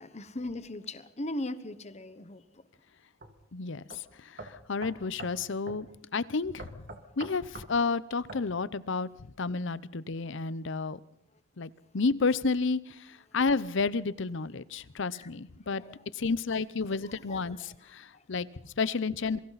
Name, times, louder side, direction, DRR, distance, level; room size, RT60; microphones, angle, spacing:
voice 1, 0.0-2.6 15.1-15.3 15.7-16.0 16.9-17.7 18.1-18.2, left 1 dB, 35° left, 13 dB, 1.1 m, -39 dB
sound 1, 3.2-3.3 3.9-4.0 4.4-5.4 5.7-5.8 6.6-7.7 8.3-8.5, right 2 dB, 50° right, 2.3 m, -43 dB
voice 2, 3.5-5.9 6.1-6.9 7.2-11.0 11.6-15.8 16.1-19.4, left 4 dB, 70° left, 18 dB, 0.7 m, -31 dB
27.5 x 23.5 x 4.1 m, 0.71 s
head